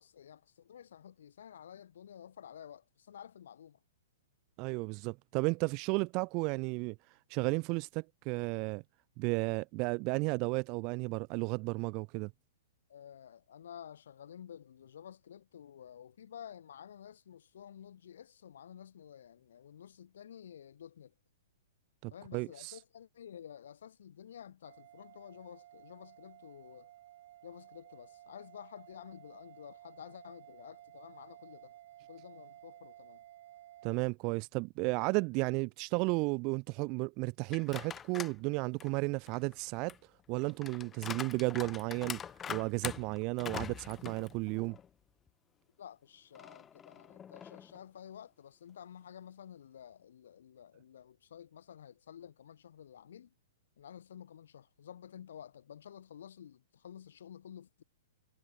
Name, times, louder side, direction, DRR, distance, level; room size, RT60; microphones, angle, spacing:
voice 1, 0.0-3.8 12.9-21.1 22.1-26.9 27.4-31.8 32.1-33.2 45.8-53.3 53.8-57.8, left 9 dB, 60° left, 5.5 m, -51 dB
voice 2, 4.6-6.9 7.3-8.8 9.2-12.3 22.0-22.8 33.8-39.9 40.3-42.2 42.5-44.7, right 29 dB, 40° right, 1.4 m, -33 dB
sound 1, 24.6-34.0, right 13 dB, 55° right, 4.1 m, -56 dB
sound 2, 37.5-38.4 38.8-44.9 45.3-45.4 46.3-47.8, left 8 dB, 20° left, 1.7 m, -44 dB
figure-of-eight pair, 110°, 0 cm